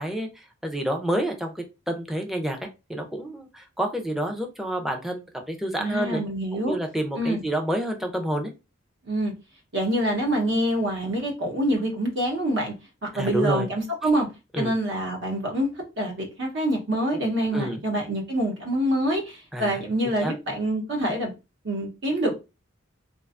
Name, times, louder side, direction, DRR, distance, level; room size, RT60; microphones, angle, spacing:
voice 1, 0.0-2.6 2.9-6.2 6.5-8.5 13.1-13.7 14.5-14.7 17.5-17.8 19.5-19.8 20.2-20.3, right 1 dB, ahead, 0.4 m, -28 dB
voice 2, 5.8-6.8 7.2-7.4 9.0-9.3 9.7-12.7 13.0-14.3 14.5-15.7 16.0-21.3 21.6-22.3, right 1 dB, 65° right, 0.9 m, -26 dB
2.5 x 2.2 x 2.4 m
head